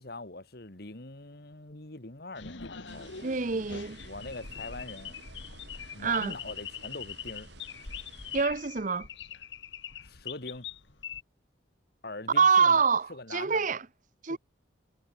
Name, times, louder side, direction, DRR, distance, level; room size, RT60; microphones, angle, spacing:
voice 1, 0.0-3.3 4.0-5.2 5.9-7.5 10.0-10.7 12.0-12.8 13.1-13.7 14.3-14.4, left 2 dB, 50° left, 1.8 m, -43 dB
sound 1, 2.3-11.2, left 7 dB, 70° left, 1.8 m, -43 dB
sound 2, 2.9-8.5, right 3 dB, 60° right, 1.7 m, -52 dB
voice 2, 3.2-4.0 6.0-6.4 8.3-9.1 12.3-13.8 14.2-14.4, right 5 dB, 40° right, 0.7 m, -25 dB
head